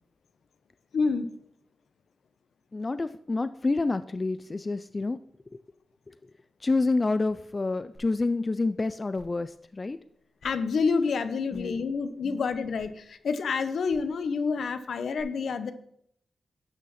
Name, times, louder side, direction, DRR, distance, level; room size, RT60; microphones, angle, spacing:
voice 1, 0.9-1.4 10.4-15.7, left 5 dB, 70° left, 11 dB, 1.0 m, -28 dB
voice 2, 2.7-5.2 5.5-5.6 6.1-6.2 6.6-10.0 11.5-11.7 12.2-12.4, left 3 dB, 30° left, 13 dB, 0.4 m, -28 dB
sound 1, 7.9-8.0 8.5-8.6 9.1-9.4 10.4-10.5 11.5-11.8 12.7-12.9 13.9-14.1 15.2-15.3, left 1 dB, 50° left, 5.3 m, -53 dB
12.0 x 8.9 x 4.2 m, 0.71 s
wide cardioid pair, 105°, 0 cm